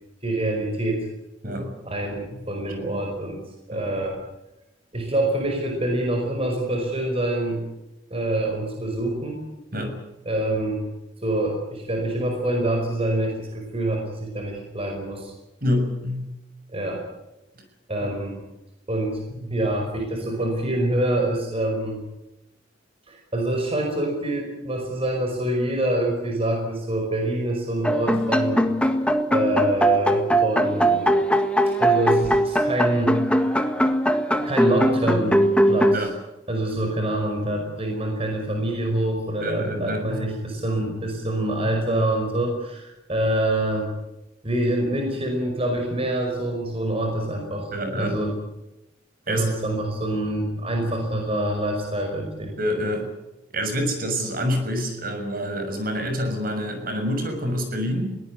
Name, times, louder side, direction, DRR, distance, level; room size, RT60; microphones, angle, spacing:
voice 1, 0.2-1.1 1.8-4.2 4.9-7.6 8.1-9.4 10.3-10.8 11.2-15.3 16.7-17.1 17.9-18.4 18.9-19.2 19.5-22.0 23.1-28.6 29.3-31.2 31.7-33.6 34.5-35.4 35.7-36.1 36.5-43.9 44.4-48.4 49.3-52.5, right 1 dB, 30° right, 2 dB, 5.3 m, -26 dB
voice 2, 15.6-16.3 19.4-19.6 35.9-36.1 39.4-40.2 47.7-48.2 49.3-49.5 52.6-53.1 53.5-58.2, equal, 50° right, 6 dB, 6.6 m, -27 dB
sound 1, 27.8-36.0, right 1 dB, 5° left, 1.7 m, -20 dB
22.5 x 19.0 x 9.6 m, 0.96 s
head